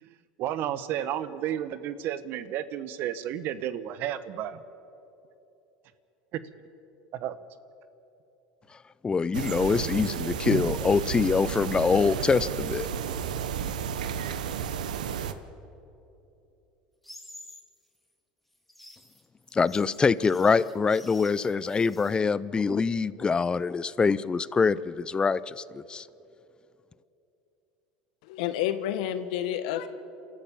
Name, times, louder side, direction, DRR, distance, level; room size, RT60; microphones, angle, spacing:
voice 1, 0.0-4.6 6.3-6.4 7.1-7.3, right 11 dB, 55° right, 14 dB, 1.0 m, -32 dB
voice 2, 9.0-12.9 19.5-26.1, left 5 dB, 20° left, 19 dB, 0.6 m, -24 dB
sound 1, 9.3-15.3, right 8 dB, 90° right, 0.9 m, -32 dB
sound 2, 17.0-17.7 18.5-22.2, left 1 dB, 5° left, 2.3 m, -50 dB
voice 3, 28.2-29.9, left 11 dB, 75° left, 10 dB, 1.4 m, -29 dB
28.0 x 13.5 x 7.2 m, 2.9 s
hypercardioid pair, 90°, 4 cm